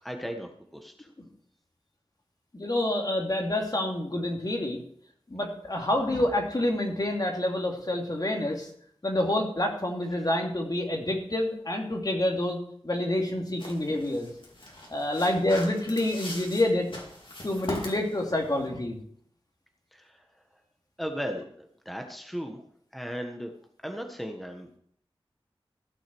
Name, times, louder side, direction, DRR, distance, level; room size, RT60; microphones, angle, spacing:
voice 1, 0.0-1.1 19.9-20.4 21.0-22.6 22.9-23.5 23.8-24.8, equal, ahead, 4 dB, 1.4 m, -37 dB
voice 2, 2.5-4.8 5.3-8.7 9.0-12.6 12.8-14.3 14.9-16.9 17.4-19.0, left 1 dB, 40° left, 1 dB, 2.7 m, -27 dB
sound 1, 13.6-18.7, left 1 dB, 60° left, 3.8 m, -41 dB
15.0 x 6.4 x 6.2 m, 0.65 s
wide cardioid pair, 45°, 10 cm